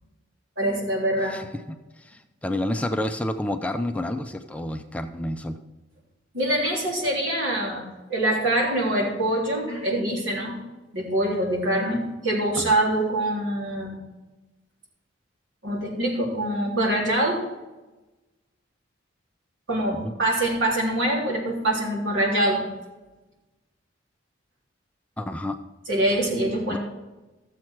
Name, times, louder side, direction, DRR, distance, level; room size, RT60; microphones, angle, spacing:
voice 1, 0.6-1.4 6.3-7.8 8.1-10.5 10.9-14.0 15.6-17.4 19.7-22.6 25.9-26.8, right 1 dB, 85° right, -2 dB, 3.4 m, -24 dB
voice 2, 1.2-5.6 12.6-12.7 19.9-20.1 25.2-25.6 26.7-26.8, left 1 dB, 5° left, 6 dB, 0.5 m, -30 dB
13.5 x 7.4 x 4.6 m, 1.1 s
head